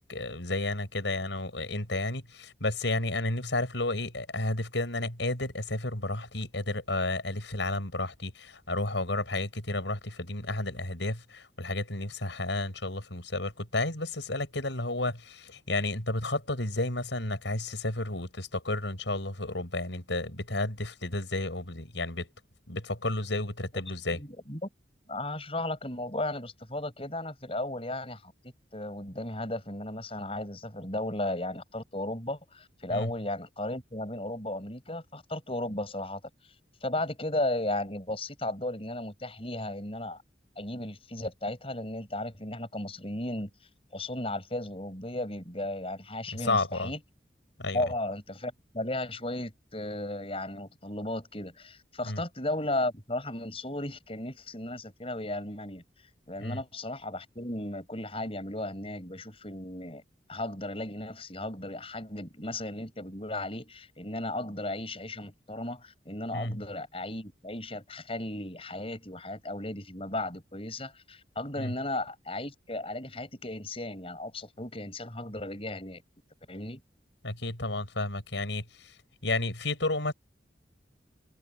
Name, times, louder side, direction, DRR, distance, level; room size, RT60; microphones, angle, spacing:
voice 1, 0.1-22.3 22.7-24.2 32.9-33.1 46.3-46.9 47.6-47.8 52.0-52.2 56.4-56.6 66.3-66.6 71.6-71.7 77.2-79.0 79.2-80.1, left 2 dB, 90° left, 7.2 m, -32 dB
voice 2, 24.2-24.7 25.1-28.3 28.7-36.2 36.8-40.2 40.6-43.5 43.9-47.0 47.7-55.8 56.3-60.0 60.3-76.0 76.5-76.8, left 1 dB, 30° left, 6.8 m, -35 dB
head